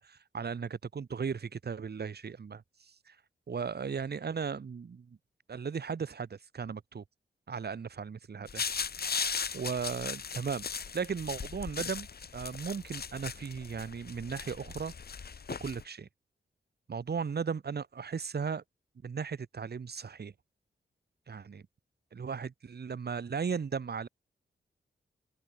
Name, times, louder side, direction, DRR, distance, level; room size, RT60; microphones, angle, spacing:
voice 1, 0.0-3.2 3.5-5.2 5.5-7.0 7.5-8.6 9.5-10.6 10.9-12.1 12.3-14.9 15.5-16.1 16.9-18.6 19.0-20.3 21.3-21.6 22.1-24.1, right 6 dB, 55° right, 1.0 m, -36 dB
sound 1, 8.5-15.8, left 6 dB, 50° left, 0.9 m, -38 dB
open air
cardioid pair, 50°, 20 cm